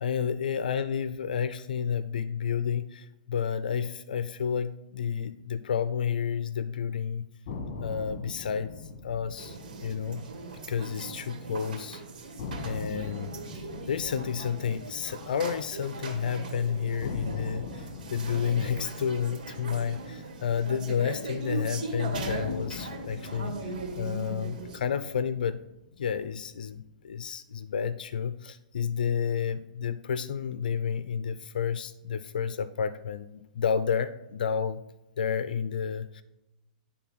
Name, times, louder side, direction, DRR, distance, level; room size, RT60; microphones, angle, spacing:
voice 1, 0.0-7.3 7.8-8.7 9.0-10.2 10.7-12.0 12.6-13.6 13.9-23.5 24.0-25.6 26.0-34.8 35.2-36.2, left 7 dB, 85° left, 13 dB, 0.5 m, -30 dB
sound 1, 7.5-11.5 11.8-11.9 12.4-16.5 17.0-21.4 22.1-26.5, left 4 dB, 50° left, 1.6 m, -42 dB
sound 2, 9.4-24.8, right 3 dB, 80° right, 2.2 m, -39 dB
11.0 x 3.9 x 5.9 m, 0.90 s
hypercardioid pair, 140°, 5 cm